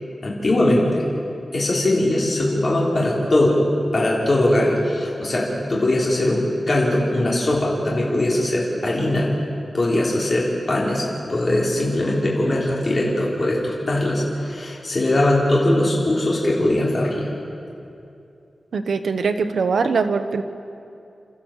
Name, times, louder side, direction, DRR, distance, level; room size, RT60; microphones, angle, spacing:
voice 1, 0.2-1.0 1.5-3.6 3.9-9.3 9.7-11.0 11.3-17.2, left 1 dB, 40° left, -5 dB, 3.7 m, -20 dB
voice 2, 18.7-20.4, right 5 dB, 85° right, 8 dB, 1.1 m, -22 dB
29.0 x 14.0 x 7.4 m, 2.6 s
wide cardioid pair, 155°, 0 cm